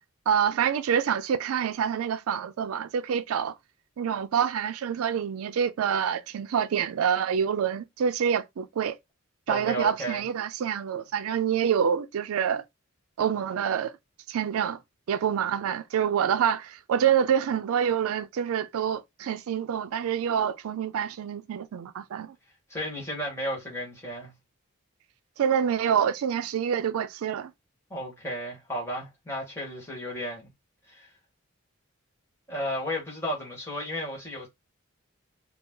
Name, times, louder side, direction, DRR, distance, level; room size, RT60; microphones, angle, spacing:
voice 1, 0.3-3.6 4.0-9.0 9.5-12.6 13.2-13.9 14.3-14.8 15.1-22.3 25.4-27.5, right 8 dB, 80° right, 0.3 m, -26 dB
voice 2, 9.5-10.2 22.7-24.3 27.9-30.5 30.9-31.1 32.5-34.5, equal, 10° left, 1.4 m, -33 dB
2.8 x 2.3 x 3.5 m
head